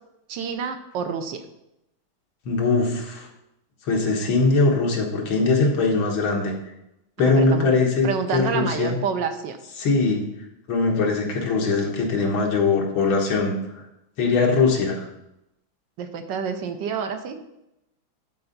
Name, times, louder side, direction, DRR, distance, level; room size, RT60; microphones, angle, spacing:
voice 1, 0.3-1.4 7.2-7.7 8.0-9.6 16.0-17.4, right 6 dB, 70° right, 7 dB, 1.2 m, -28 dB
voice 2, 2.5-3.3 3.9-6.5 7.2-9.0 9.8-10.2 10.7-13.5 14.2-15.1, left 3 dB, 85° left, 0 dB, 2.1 m, -21 dB
11.5 x 4.4 x 3.9 m, 0.87 s
omnidirectional pair, 2.2 m